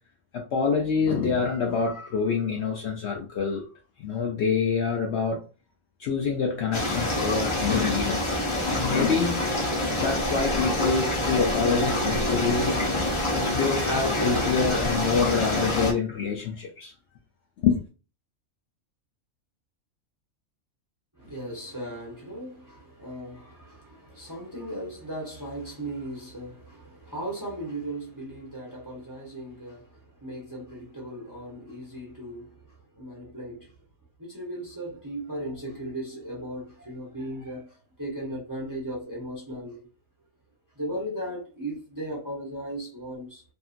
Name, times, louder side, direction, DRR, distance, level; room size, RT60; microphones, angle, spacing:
voice 1, 0.3-3.7 4.0-5.5 6.0-8.3 8.6-9.5 10.0-12.8 13.3-16.9 17.6-17.8, left 5 dB, 65° left, 0.7 m, -26 dB
sound 1, 6.7-15.9, left 1 dB, 30° left, 0.6 m, -26 dB
voice 2, 21.1-33.7 34.2-39.9 40.7-43.4, right 1 dB, 20° right, 0.7 m, -37 dB
2.7 x 2.5 x 2.4 m
omnidirectional pair, 1.5 m